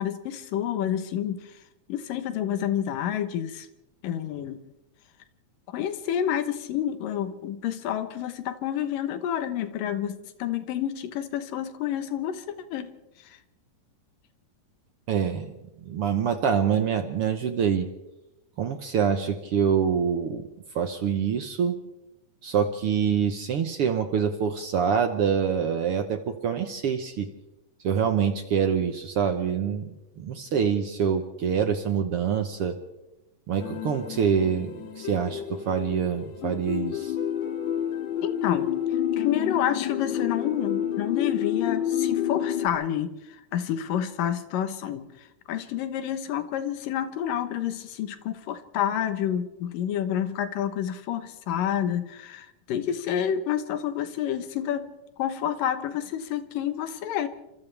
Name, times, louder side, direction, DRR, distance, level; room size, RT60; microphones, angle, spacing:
voice 1, 0.0-1.6 1.9-3.7 4.0-4.6 5.7-12.5 12.7-12.9 13.2-13.4 38.2-38.7 39.2-54.9 55.2-57.3, left 10 dB, 75° left, 10 dB, 2.8 m, -29 dB
voice 2, 15.1-15.5 15.8-17.9 18.6-20.4 20.7-21.8 22.4-27.3 27.8-32.8 33.5-34.7 35.0-37.1, right 7 dB, 70° right, 7 dB, 1.4 m, -25 dB
sound 1, 33.6-42.7, left 10 dB, 60° left, 2.6 m, -29 dB
29.0 x 26.0 x 3.4 m, 0.96 s
omnidirectional pair, 4.0 m